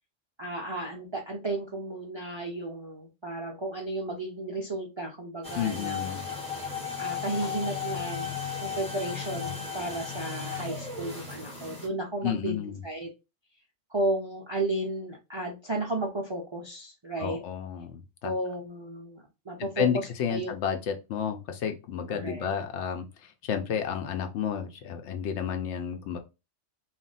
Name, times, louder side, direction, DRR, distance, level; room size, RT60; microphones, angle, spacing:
voice 1, 0.4-6.0 7.0-8.3 8.6-13.1 13.9-17.4 18.2-20.5 22.1-22.5, right 2 dB, 45° right, -1 dB, 0.3 m, -33 dB
sound 1, 5.4-11.9, left 6 dB, 5° left, 0.7 m, -35 dB
voice 2, 5.5-6.2 12.2-12.8 17.2-18.3 19.6-26.2, left 8 dB, 70° left, 6 dB, 0.9 m, -31 dB
2.5 x 2.1 x 3.9 m, 0.27 s
omnidirectional pair, 1.3 m